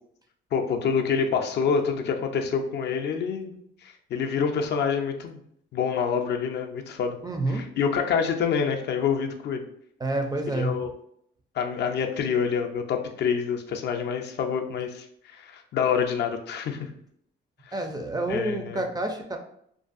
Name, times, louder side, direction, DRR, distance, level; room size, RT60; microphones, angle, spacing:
voice 1, 0.5-3.5 3.8-5.4 5.7-7.2 7.5-9.6 10.5-10.9 11.5-15.1 15.3-16.9 17.7-17.8 18.3-18.8, left 6 dB, 60° left, 4 dB, 0.4 m, -27 dB
voice 2, 7.2-7.7 10.0-10.8 17.7-19.4, right 2 dB, 20° right, 4 dB, 0.4 m, -28 dB
2.5 x 2.3 x 2.5 m, 0.68 s
cardioid pair, 90°, 20 cm